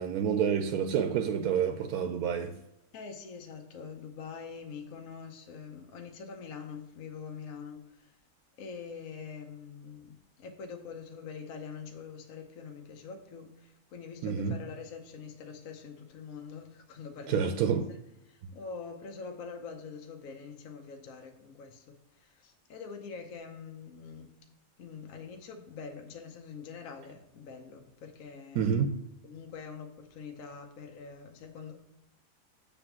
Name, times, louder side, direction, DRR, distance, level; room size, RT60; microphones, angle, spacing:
voice 1, 0.0-2.5 14.2-14.6 17.3-17.9 28.6-28.9, right 7 dB, 80° right, 1.1 m, -28 dB
voice 2, 2.9-8.2 8.6-17.8 18.3-24.3 24.8-28.7 29.2-31.8, left 5 dB, 65° left, 1.2 m, -44 dB
7.9 x 3.6 x 5.8 m
omnidirectional pair, 1.6 m